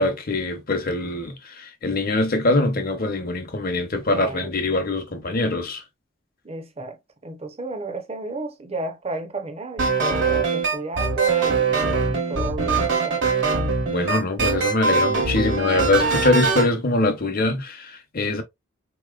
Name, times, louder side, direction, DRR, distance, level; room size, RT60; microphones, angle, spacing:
voice 1, 0.0-5.8 13.9-18.4, left 2 dB, 50° left, 0.9 m, -23 dB
voice 2, 4.1-4.5 6.4-7.0 7.2-13.3, right 3 dB, 30° right, 0.8 m, -33 dB
sound 1, 9.8-16.7, right 4 dB, 60° right, 1.3 m, -22 dB
4.2 x 3.0 x 2.4 m
head